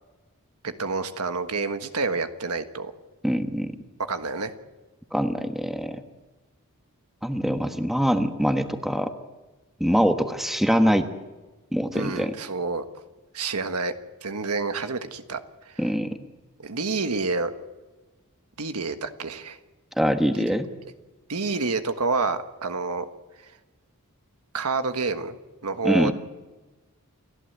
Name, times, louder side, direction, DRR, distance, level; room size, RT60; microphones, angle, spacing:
voice 1, 0.6-2.9 4.1-4.5 11.9-12.8 13.3-13.9 14.2-15.4 15.6-15.8 16.6-17.5 18.6-19.6 20.3-20.5 21.3-23.1 24.5-25.4 25.6-26.1, right 4 dB, 80° right, 8 dB, 1.5 m, -28 dB
voice 2, 3.2-3.8 5.1-6.0 7.2-9.1 9.8-11.1 11.7-12.3 15.8-16.2 20.0-20.7 25.8-26.1, equal, ahead, 7 dB, 1.2 m, -23 dB
29.0 x 11.5 x 8.0 m, 1.2 s
head